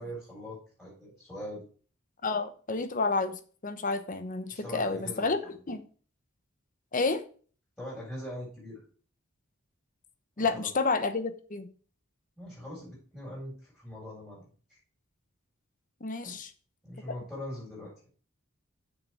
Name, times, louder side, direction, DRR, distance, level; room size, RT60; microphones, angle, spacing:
voice 1, 0.0-1.6 4.5-5.3 7.8-8.8 10.4-10.7 12.4-14.4 14.7-14.8 16.2-16.4 16.8-17.9, equal, 5° left, 4.7 m, -41 dB
voice 2, 2.2-3.3 3.6-5.4 5.7-5.8 6.9-7.2 10.4-11.7 16.0-16.5, left 3 dB, 40° left, 0.9 m, -30 dB
6.9 x 6.4 x 4.7 m
head